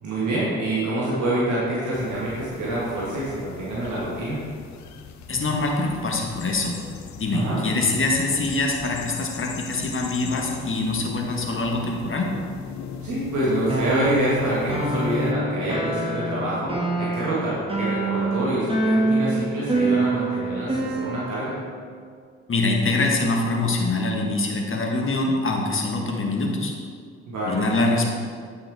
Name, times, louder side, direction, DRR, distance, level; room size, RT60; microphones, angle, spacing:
voice 1, 0.0-4.4 7.3-7.6 13.0-21.6 27.3-27.6, right 1 dB, 60° right, -8 dB, 2.0 m, -26 dB
sound 1, 1.9-15.3, left 7 dB, 55° left, 0.7 m, -39 dB
voice 2, 5.3-6.7 7.2-12.3 22.5-26.7 27.4-28.1, left 2 dB, 40° left, 0 dB, 1.5 m, -24 dB
sound 2, 13.7-21.6, right 2 dB, 15° right, 1.8 m, -26 dB
8.9 x 5.7 x 3.5 m, 2.1 s
hypercardioid pair, 45°, 33 cm